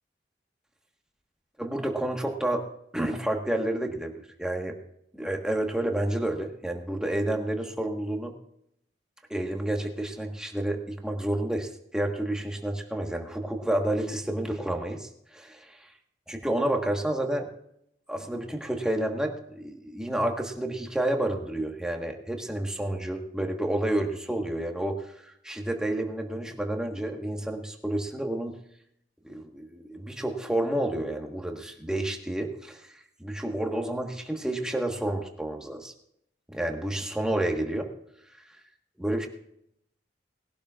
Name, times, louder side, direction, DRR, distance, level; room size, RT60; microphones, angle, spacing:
voice 1, 1.6-2.6 2.9-4.1 4.4-4.8 5.1-8.3 9.3-15.8 16.3-17.5 18.1-25.1 25.4-28.6 29.2-32.8 33.2-35.9 36.5-37.9 39.0-39.3, right 1 dB, 5° right, 2 dB, 1.4 m, -30 dB
20.5 x 12.0 x 2.5 m, 0.73 s
head